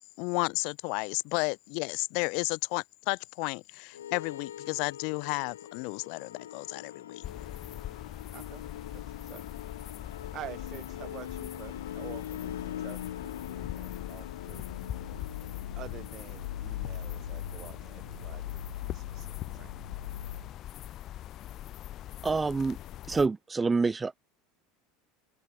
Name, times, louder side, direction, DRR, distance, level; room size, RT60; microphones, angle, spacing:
voice 1, 0.2-7.2, left 33 dB, 65° left, 0.9 m, -32 dB
sound 1, 3.9-20.5, left 10 dB, 90° left, 1.3 m, -41 dB
sound 2, 7.2-23.3, left 13 dB, 50° left, 2.3 m, -42 dB
voice 2, 8.3-8.6 8.9-9.5 10.3-14.7 15.8-19.7, right 13 dB, 50° right, 5.8 m, -48 dB
voice 3, 22.2-22.8 23.1-24.2, right 4 dB, 20° right, 1.4 m, -27 dB
hypercardioid pair, 85°, 0 cm